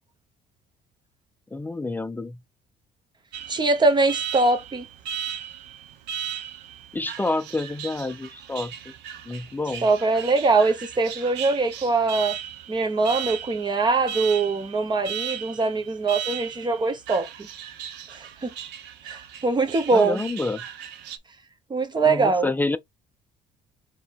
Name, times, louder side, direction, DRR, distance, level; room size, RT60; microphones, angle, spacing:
voice 1, 1.5-2.4 6.9-8.7 9.3-9.9 19.9-20.6 22.0-22.8, left 2 dB, 10° left, 0.4 m, -28 dB
Alarm, 3.3-21.2, right 9 dB, 85° right, 0.7 m, -37 dB
voice 2, 3.5-4.8 9.8-12.4 12.7-17.5 18.1-18.5 19.1-20.2 21.7-22.5, right 3 dB, 25° right, 1.0 m, -22 dB
4.5 x 3.0 x 3.4 m
cardioid pair, 110°, 17 cm